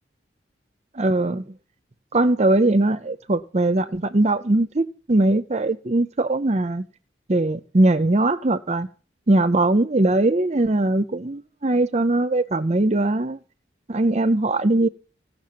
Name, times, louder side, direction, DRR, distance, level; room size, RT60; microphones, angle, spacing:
voice 1, 1.0-1.4 2.1-6.8 7.3-8.9 9.3-13.4 13.9-14.9, right 2 dB, 35° right, 0.6 m, -20 dB
16.0 x 6.5 x 9.3 m
head